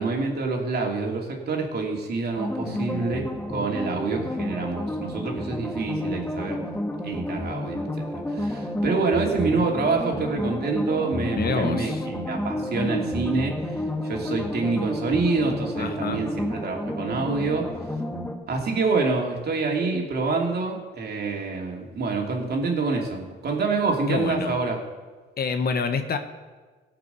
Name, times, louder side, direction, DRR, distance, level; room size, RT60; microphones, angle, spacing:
voice 1, 0.0-6.6 7.0-8.0 8.3-13.8 14.0-17.7 18.5-24.8, right 4 dB, 55° right, 0 dB, 2.7 m, -26 dB
sound 1, 2.4-18.3, left 1 dB, 10° left, 1.6 m, -31 dB
voice 2, 2.6-3.1 11.3-12.0 15.8-16.2 24.1-24.6 25.4-26.2, left 5 dB, 50° left, 8 dB, 1.2 m, -27 dB
16.5 x 6.1 x 6.9 m, 1.4 s
cardioid pair, 90°, 20 cm